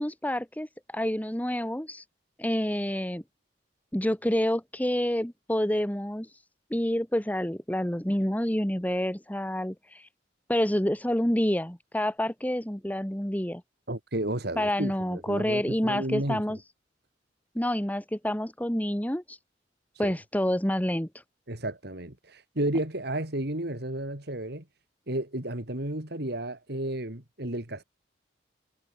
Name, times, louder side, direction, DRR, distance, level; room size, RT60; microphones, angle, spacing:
voice 1, 0.0-2.0 2.4-3.2 3.9-6.3 6.7-10.1 10.5-13.6 14.6-16.6 17.5-19.4 20.0-21.1, equal, 10° left, 1.7 m, -28 dB
voice 2, 13.9-16.6 20.0-20.2 21.5-24.6 25.1-27.8, right 1 dB, 65° right, 3.8 m, -32 dB
head